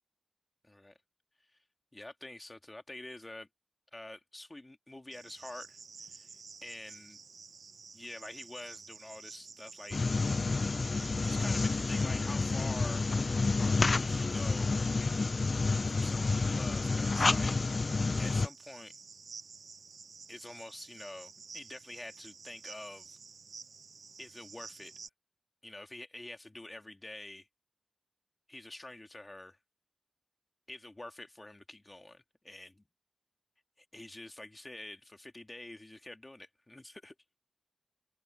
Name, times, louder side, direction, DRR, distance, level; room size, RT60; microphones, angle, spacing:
voice 1, 0.6-1.0 1.5-1.6 1.9-3.5 3.9-6.4 6.6-7.2 7.9-10.0 11.2-13.1 13.9-14.7 15.9-17.6 18.2-18.9 20.3-23.2 24.2-24.9 25.6-27.5 28.5-29.6 30.7-32.8 33.8-37.1, left 1 dB, 25° left, 2.2 m, -47 dB
Cricket, 5.1-25.1, right 5 dB, 85° right, 0.6 m, -51 dB
sound 1, 9.9-18.5, left 3 dB, 50° left, 0.3 m, -29 dB
open air
wide cardioid pair, 110°, 0 cm